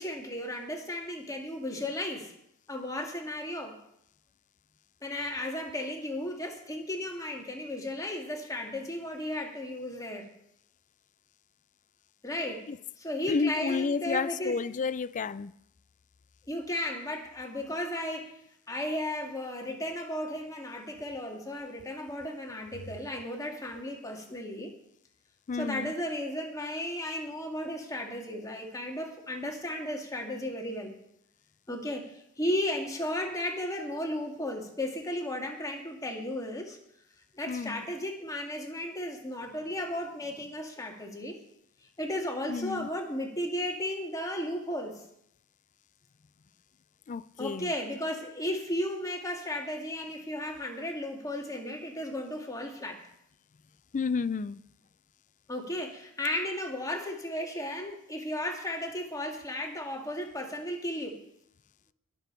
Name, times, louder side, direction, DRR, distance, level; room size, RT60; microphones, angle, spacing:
voice 1, 0.0-2.3 2.7-3.8 5.0-10.3 12.2-12.7 13.0-14.6 16.5-18.3 18.7-24.7 25.5-30.9 31.7-36.8 37.3-41.4 42.0-45.0 47.4-53.0 55.5-61.2, left 1 dB, 15° left, 1 dB, 1.9 m, -34 dB
voice 2, 13.3-15.5 25.5-25.9 37.5-37.8 42.5-42.9 47.1-47.7 53.9-54.6, left 5 dB, 35° left, 17 dB, 0.4 m, -31 dB
21.0 x 7.1 x 4.5 m, 0.76 s
head